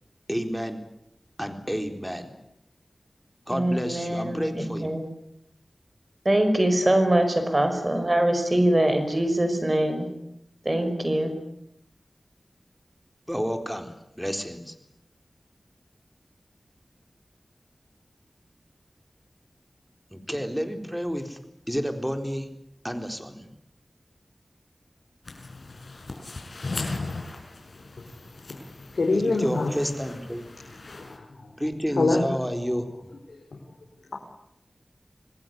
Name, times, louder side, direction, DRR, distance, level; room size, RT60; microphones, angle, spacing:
voice 1, 0.3-0.8 1.4-2.3 3.5-4.9 13.3-14.7 20.1-21.4 21.7-22.5 22.8-23.5 29.1-30.4 31.6-32.9, equal, ahead, 6 dB, 3.9 m, -30 dB
voice 2, 3.5-5.1 6.3-10.1 10.7-11.3, right 1 dB, 30° right, 7 dB, 5.5 m, -23 dB
sound 1, 25.2-31.2, left 3 dB, 70° left, 5.7 m, -38 dB
voice 3, 28.9-29.7 31.0-31.5 32.0-32.3, left 3 dB, 90° left, 1 dB, 4.3 m, -24 dB
26.5 x 19.5 x 9.5 m, 0.81 s
wide cardioid pair, 70°, 0 cm